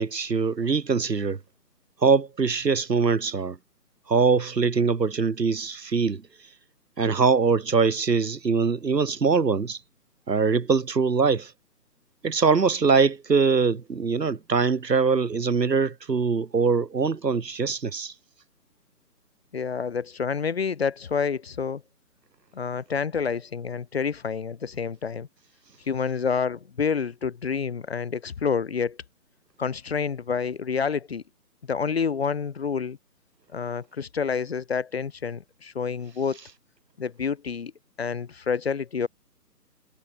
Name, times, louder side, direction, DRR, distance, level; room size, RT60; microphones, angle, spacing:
voice 1, 0.0-1.4 2.0-3.6 4.1-6.2 7.0-9.8 10.3-11.5 12.2-18.1, right 5 dB, 90° right, 2.1 m, -23 dB
voice 2, 19.5-21.8 22.5-25.3 25.9-29.0 29.6-31.2 31.7-33.0 33.5-36.4 37.0-37.7 38.0-39.1, left 6 dB, 40° left, 1.0 m, -28 dB
hypercardioid pair, 160°, 48 cm